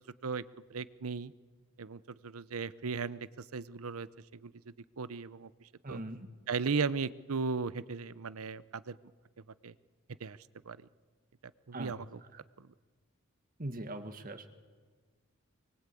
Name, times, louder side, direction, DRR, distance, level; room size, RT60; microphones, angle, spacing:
voice 1, 0.7-1.3 1.8-4.1 4.4-4.5 5.0-5.5 5.9-6.0 6.5-9.0 9.6-9.7 10.2-10.4 10.7-10.8 11.7-12.1 12.6-12.7, right 5 dB, 85° right, 17 dB, 0.7 m, -36 dB
voice 2, 5.8-6.2 11.7-11.9 12.3-12.4 13.6-14.5, right 1 dB, 40° right, 8 dB, 1.8 m, -40 dB
25.0 x 23.0 x 8.5 m, 1.5 s
head